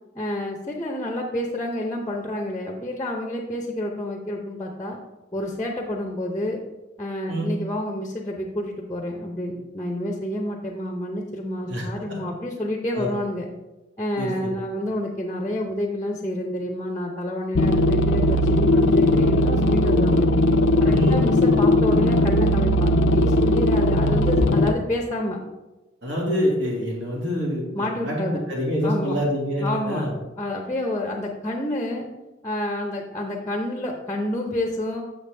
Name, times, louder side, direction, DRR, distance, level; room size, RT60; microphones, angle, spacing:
voice 1, 0.1-5.0 5.3-6.6 7.0-13.5 14.0-20.3 20.8-25.4 27.7-28.4 28.8-29.2 29.6-30.0 30.4-32.1 32.4-35.0, left 1 dB, 15° left, 1 dB, 0.6 m, -29 dB
voice 2, 11.7-12.2 12.9-13.1 14.2-14.5 20.9-21.2 26.0-30.1, equal, 75° right, -2 dB, 1.9 m, -26 dB
sound 1, 17.6-24.7, left 1 dB, 80° left, 0.5 m, -18 dB
6.8 x 6.7 x 3.3 m, 1.1 s
head